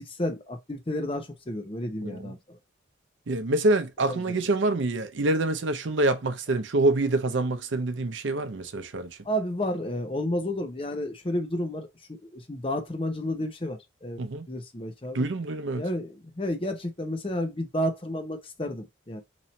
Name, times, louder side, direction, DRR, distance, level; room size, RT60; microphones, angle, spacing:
voice 1, 0.0-2.6 4.0-4.4 9.2-14.2 14.5-15.3 15.8-19.2, left 1 dB, 30° left, 0.7 m, -31 dB
voice 2, 3.3-9.2 14.2-14.5 15.1-15.8, right 2 dB, 75° right, 0.6 m, -26 dB
3.0 x 2.7 x 4.1 m
head